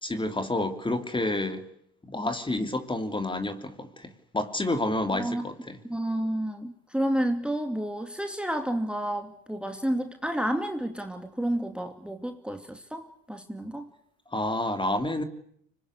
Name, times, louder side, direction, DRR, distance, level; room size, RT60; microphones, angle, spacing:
voice 1, 0.0-1.6 2.0-5.8 14.3-15.2, left 2 dB, 15° left, 3.1 m, -29 dB
voice 2, 5.9-13.9, right 1 dB, 5° right, 2.7 m, -30 dB
24.5 x 21.5 x 9.9 m
supercardioid pair, 90°, 33 cm